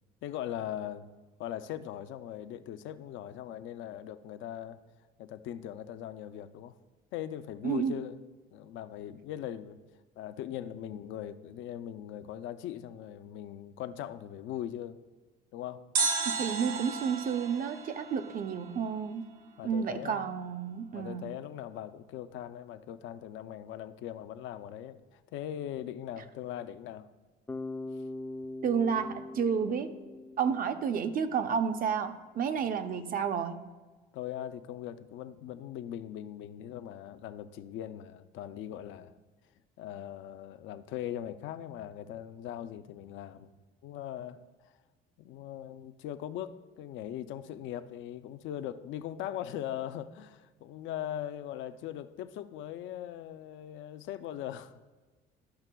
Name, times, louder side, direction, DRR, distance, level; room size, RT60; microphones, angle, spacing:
voice 1, 0.2-1.1 1.4-4.8 5.2-6.8 7.1-8.2 8.5-9.8 10.2-15.0 15.5-15.8 19.6-20.4 20.9-27.1 34.1-39.2 39.8-43.5 43.8-44.4 45.2-54.8, left 11 dB, 70° left, 11 dB, 0.5 m, -40 dB
voice 2, 7.6-7.9 16.4-19.2 19.6-21.3 28.6-29.9 30.4-33.6, right 7 dB, 45° right, 8 dB, 0.6 m, -31 dB
sound 1, 16.0-19.0 19.3-19.4, right 4 dB, 85° right, 1.1 m, -34 dB
Bass guitar, 27.5-31.4, left 2 dB, 10° left, 0.4 m, -42 dB
12.5 x 5.7 x 2.3 m, 1.3 s
cardioid pair, 105°, 20 cm